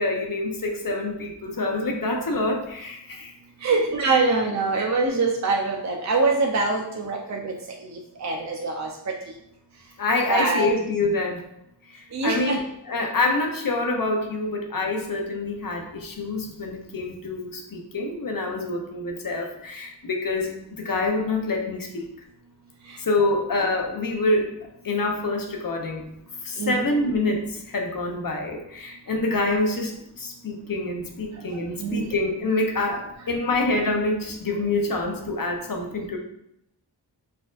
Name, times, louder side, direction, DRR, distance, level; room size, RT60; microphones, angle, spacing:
voice 1, 0.0-3.3 3.7-3.8 4.8-4.9 10.0-11.4 11.9-22.1 23.0-24.5 24.8-26.1 26.4-36.2, left 2 dB, 50° left, 2 dB, 0.7 m, -26 dB
voice 2, 3.6-7.5 7.8-8.9 9.3-9.4 10.3-10.7 12.1-12.6 22.9-23.0 26.6-26.8 31.5-32.1, right 3 dB, 40° right, 0 dB, 0.5 m, -24 dB
4.2 x 2.6 x 2.4 m, 0.80 s
wide cardioid pair, 50°, 44 cm